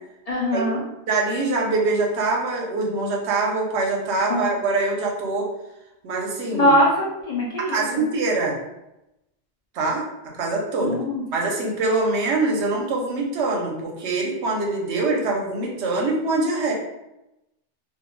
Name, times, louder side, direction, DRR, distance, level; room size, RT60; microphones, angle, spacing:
voice 1, 0.3-0.8 4.3-4.5 6.5-7.8 10.8-11.2, equal, 50° left, -4 dB, 0.4 m, -21 dB
voice 2, 1.1-5.5 6.0-6.7 7.6-8.6 9.7-10.1 10.3-11.0 11.3-16.7, right 3 dB, 75° right, 0 dB, 0.9 m, -24 dB
2.4 x 2.0 x 3.0 m, 0.90 s
omnidirectional pair, 1.2 m